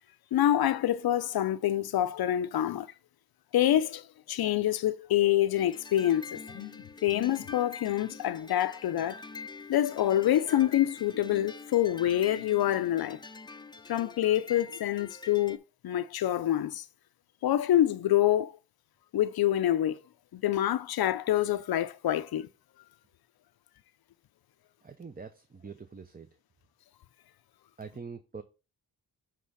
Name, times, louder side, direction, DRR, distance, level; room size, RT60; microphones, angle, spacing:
voice 1, 0.3-2.9 3.5-9.2 9.7-13.2 13.9-15.6 15.8-16.9 17.4-18.6 19.1-20.0 20.3-22.5, left 12 dB, 80° left, 0.6 m, -26 dB
sound 1, 5.6-15.6, left 3 dB, 10° left, 0.6 m, -46 dB
voice 2, 24.8-26.3 27.8-28.4, right 5 dB, 25° right, 0.7 m, -44 dB
7.5 x 3.6 x 5.6 m
cardioid pair, 80°, 37 cm